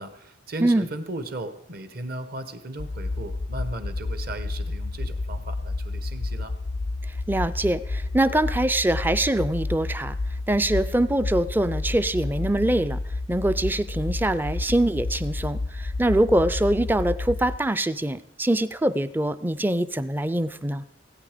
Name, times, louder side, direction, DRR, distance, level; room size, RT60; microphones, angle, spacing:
voice 1, 0.0-6.5, right 1 dB, 55° right, 10 dB, 1.1 m, -36 dB
sound 1, 2.8-17.6, left 2 dB, 45° left, 0.4 m, -30 dB
voice 2, 7.3-10.1 10.5-13.0 13.3-20.8, right 1 dB, 10° right, 15 dB, 0.4 m, -24 dB
17.0 x 9.0 x 5.0 m, 0.82 s
head